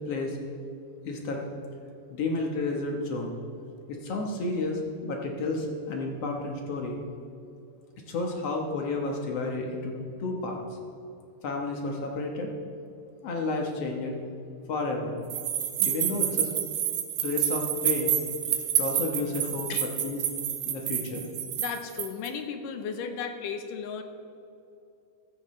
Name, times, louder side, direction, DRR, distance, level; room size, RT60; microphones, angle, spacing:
voice 1, 0.1-0.4 1.0-1.4 2.1-3.4 3.9-7.0 8.1-9.9 10.2-10.6 11.4-12.5 13.2-14.2 14.7-15.2 15.8-16.5 17.2-18.1 18.8-20.2 20.7-21.3, left 3 dB, 60° left, 1 dB, 1.9 m, -31 dB
sound 1, 15.3-22.3, right 10 dB, 75° right, 2.0 m, -29 dB
voice 2, 21.6-24.0, left 6 dB, 75° left, 7 dB, 2.4 m, -35 dB
15.0 x 13.5 x 3.2 m, 2.6 s
omnidirectional pair, 4.0 m